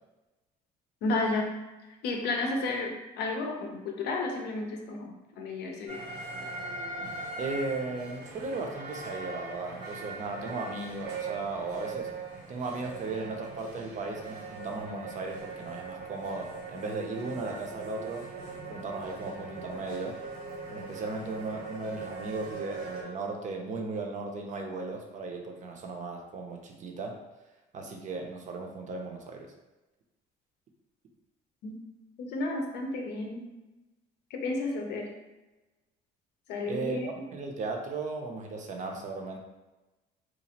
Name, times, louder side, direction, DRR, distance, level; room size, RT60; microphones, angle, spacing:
voice 1, 1.0-1.6 2.0-6.0 31.6-31.8 32.2-33.5 34.3-35.1 36.5-37.1, left 2 dB, 80° left, 2 dB, 0.6 m, -32 dB
sound 1, 5.9-23.0, right 4 dB, 75° right, 0.8 m, -40 dB
voice 2, 7.4-12.1 12.5-18.3 18.7-20.2 20.7-27.2 27.7-29.5 36.7-39.4, right 3 dB, 45° right, 2 dB, 0.5 m, -36 dB
2.8 x 2.4 x 2.8 m, 1.1 s
cardioid pair, 110°, 17 cm